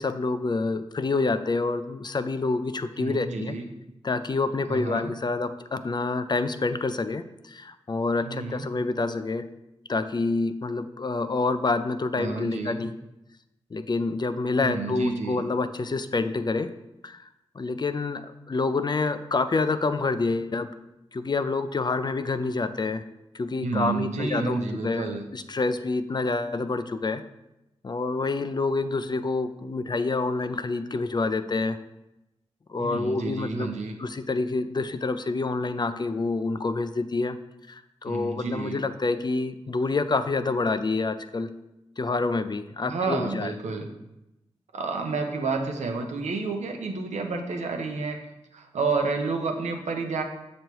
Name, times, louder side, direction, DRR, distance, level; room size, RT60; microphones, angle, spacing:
voice 1, 0.0-3.6 4.0-9.5 9.9-12.9 13.7-16.7 17.0-17.3 17.6-20.7 21.1-23.0 23.3-27.2 27.8-31.8 32.7-33.7 34.0-37.4 37.7-41.5 42.0-43.5, left 3 dB, 40° left, 11 dB, 0.4 m, -27 dB
voice 2, 3.0-3.7 4.7-5.1 8.2-8.7 12.2-12.8 14.6-15.4 23.6-25.2 32.8-33.9 38.1-38.8 42.9-43.9 44.7-48.2 48.5-50.2, right 3 dB, 90° right, 3 dB, 0.7 m, -30 dB
6.8 x 3.1 x 4.5 m, 0.92 s
cardioid pair, 45°, 12 cm